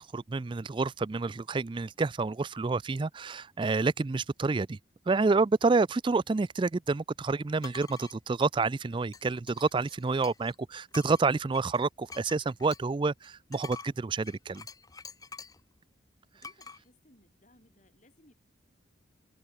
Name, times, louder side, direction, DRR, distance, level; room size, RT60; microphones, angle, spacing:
voice 1, 0.0-4.8 5.1-14.6, right 3 dB, 25° right, 0.3 m, -28 dB
sound 1, 7.6-8.2 9.1-10.6 10.9-15.6 16.4-16.8, left 5 dB, 20° left, 1.2 m, -47 dB
voice 2, 16.3-18.3, left 1 dB, 40° left, 6.5 m, -63 dB
head